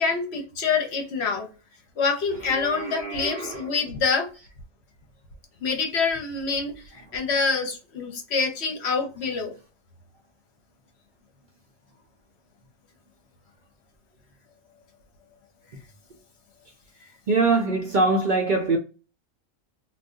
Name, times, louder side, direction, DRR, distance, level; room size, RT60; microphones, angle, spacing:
voice 1, 0.0-1.5 2.0-4.3 5.6-9.5, left 5 dB, 65° left, 1.0 m, -26 dB
voice 2, 2.4-3.9 6.9-7.0 17.3-18.8, right 3 dB, 55° right, 0.6 m, -24 dB
2.6 x 2.3 x 3.6 m
omnidirectional pair, 1.3 m